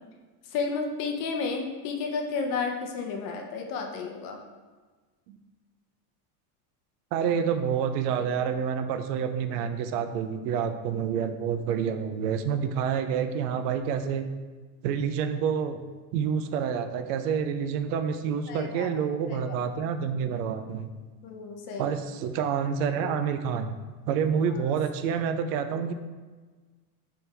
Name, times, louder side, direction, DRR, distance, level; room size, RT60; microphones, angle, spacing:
voice 1, 0.5-4.4 18.5-18.9 19.3-19.6 21.2-22.0 24.5-24.6, left 4 dB, 45° left, 3 dB, 0.6 m, -32 dB
voice 2, 7.1-14.3 14.8-15.8 16.1-20.9 21.8-23.7 24.1-25.9, right 7 dB, 75° right, 8 dB, 0.6 m, -28 dB
3.6 x 3.3 x 4.5 m, 1.4 s
supercardioid pair, 155°, 47 cm